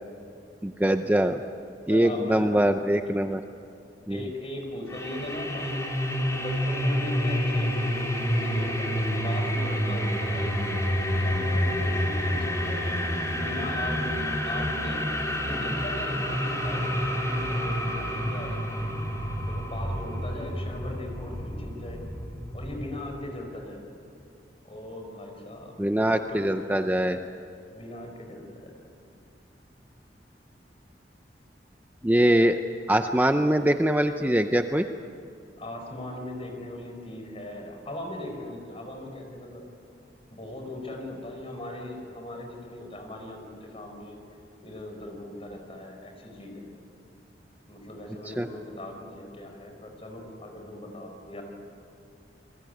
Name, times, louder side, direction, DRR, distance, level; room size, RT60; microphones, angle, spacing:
voice 1, 0.6-1.4 1.9-3.4 4.1-4.2 25.8-27.2 32.0-32.6 32.9-34.9 48.4-48.5, right 1 dB, 10° right, 7 dB, 0.6 m, -23 dB
voice 2, 1.9-2.5 3.5-3.6 4.1-5.8 6.3-10.6 11.1-12.9 13.4-15.1 15.4-18.9 19.5-22.0 22.5-23.9 24.6-25.7 26.1-26.9 27.7-28.7 35.6-39.6 40.3-44.2 44.6-46.7 47.7-51.4, left 1 dB, 35° left, 3 dB, 5.1 m, -39 dB
sound 1, 4.9-22.8, equal, 15° left, 4.0 m, -28 dB
29.0 x 21.0 x 9.4 m, 2.6 s
head